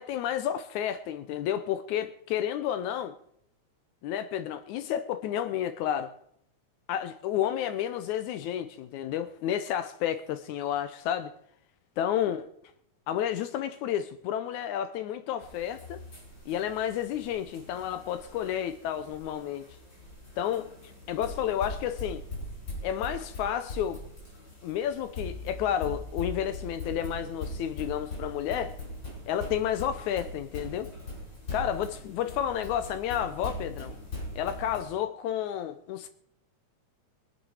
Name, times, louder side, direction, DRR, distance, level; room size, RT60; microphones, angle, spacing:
voice 1, 0.0-3.2 4.0-6.1 6.9-11.3 12.0-12.5 13.1-16.0 16.5-19.8 20.4-22.3 22.8-24.0 24.6-28.8 29.3-30.9 31.5-34.0 34.4-36.1, left 10 dB, 85° left, 2.2 m, -31 dB
sound 1, 15.4-34.9, left 2 dB, 40° left, 6.3 m, -41 dB
23.0 x 7.9 x 4.9 m
omnidirectional pair, 3.3 m